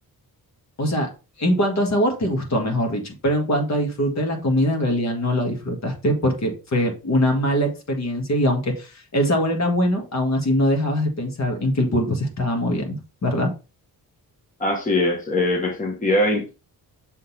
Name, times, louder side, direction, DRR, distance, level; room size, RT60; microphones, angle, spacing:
voice 1, 0.8-1.1 1.4-13.5, equal, 45° left, 3 dB, 1.7 m, -22 dB
voice 2, 14.6-16.5, left 1 dB, 20° left, 1 dB, 1.2 m, -22 dB
6.5 x 3.9 x 4.0 m, 0.30 s
wide cardioid pair, 160°, 38 cm